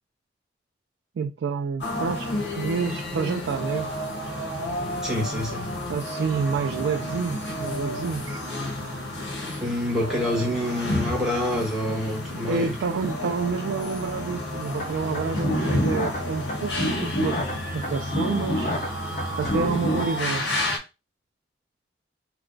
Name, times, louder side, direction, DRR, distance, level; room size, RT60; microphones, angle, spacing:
voice 1, 1.2-3.9 5.9-8.4 10.4-10.5 12.5-17.4 17.7-18.7 19.4-20.4, right 5 dB, 85° right, 0.3 m, -28 dB
sound 1, 1.8-20.8, left 1 dB, 75° left, 1.1 m, -31 dB
voice 2, 5.0-5.8 9.6-12.7, left 1 dB, 5° right, 1.0 m, -27 dB
sound 2, 14.8-20.0, left 1 dB, 45° left, 0.9 m, -29 dB
3.3 x 2.1 x 3.8 m
head